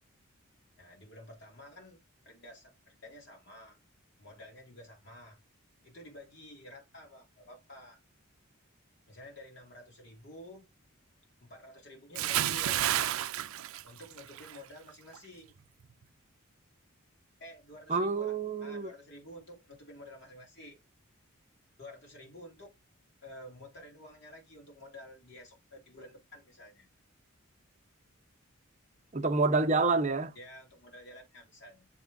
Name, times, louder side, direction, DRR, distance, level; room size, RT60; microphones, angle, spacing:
voice 1, 0.8-2.0 2.2-3.8 4.2-5.4 5.8-8.0 9.1-10.6 11.4-12.8 13.8-15.5 17.4-20.8 21.8-22.7 23.2-26.9 30.3-31.9, left 1 dB, 55° left, 3.3 m, -51 dB
Bathtub (filling or washing) / Splash splatter, 12.1-14.6 14.9-15.2, right 12 dB, 80° right, 0.4 m, -31 dB
voice 2, 17.9-18.9 29.1-30.3, right 3 dB, 35° right, 0.8 m, -28 dB
7.0 x 3.7 x 5.4 m
head